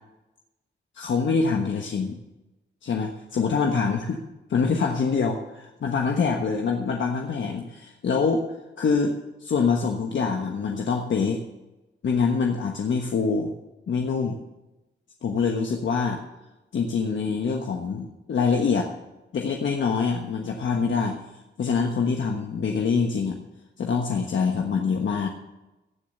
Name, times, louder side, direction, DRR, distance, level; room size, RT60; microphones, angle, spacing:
voice 1, 0.9-2.2 2.8-4.2 4.5-8.4 8.8-11.4 12.0-13.5 13.9-14.4 15.2-16.2 16.7-18.9 19.3-21.2 21.6-23.4 23.8-25.3, left 5 dB, 75° left, 2 dB, 1.3 m, -25 dB
15.0 x 7.3 x 6.6 m, 1.0 s
wide cardioid pair, 110°, 20 cm